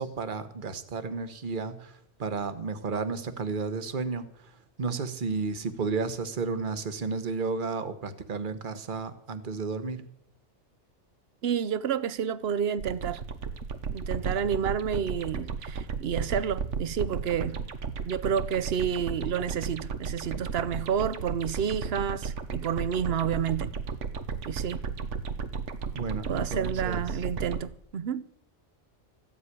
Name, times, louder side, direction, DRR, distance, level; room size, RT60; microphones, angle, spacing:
voice 1, 0.0-10.0 25.9-27.1, right 4 dB, 45° right, 1.2 m, -33 dB
voice 2, 11.4-13.2 13.9-17.6 18.0-23.7 24.4-24.8 26.3-28.2, right 8 dB, 60° right, 0.9 m, -30 dB
sound 1, 12.8-27.6, right 5 dB, 80° right, 1.3 m, -34 dB
14.5 x 7.6 x 9.7 m
omnidirectional pair, 1.2 m